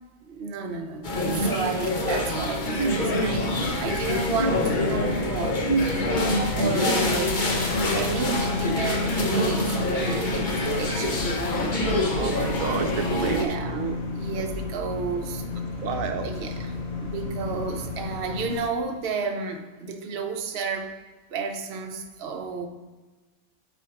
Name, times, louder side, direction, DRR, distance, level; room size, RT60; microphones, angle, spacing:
voice 1, 0.2-12.2 13.2-15.4 16.2-16.7 17.0-20.9 21.3-22.7, right 4 dB, 50° right, 4 dB, 0.9 m, -32 dB
sound 1, 1.0-13.4, left 1 dB, 40° left, 1.0 m, -25 dB
sound 2, 3.1-18.6, left 3 dB, 75° left, 1.8 m, -33 dB
voice 2, 12.1-14.0 15.8-16.3, right 6 dB, 75° right, 6 dB, 1.1 m, -30 dB
8.8 x 4.4 x 4.9 m, 1.3 s
omnidirectional pair, 1.4 m